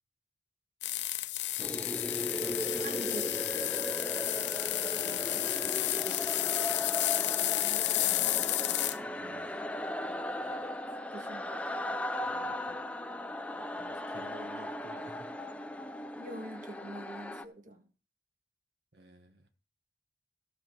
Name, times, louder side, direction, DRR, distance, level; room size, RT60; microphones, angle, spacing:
sound 1, 0.8-9.0, left 15 dB, 80° left, 0.6 m, -31 dB
sound 2, 1.6-17.4, left 1 dB, 5° left, 0.5 m, -37 dB
voice 1, 2.7-4.0 8.2-8.6 10.4-10.8 11.1-12.0 16.2-17.8, right 1 dB, 45° right, 1.5 m, -46 dB
voice 2, 4.9-6.4 8.0-8.5 9.0-9.5 12.2-12.8 13.8-15.3 18.9-19.5, right 1 dB, 70° right, 1.3 m, -54 dB
15.0 x 5.1 x 6.1 m
head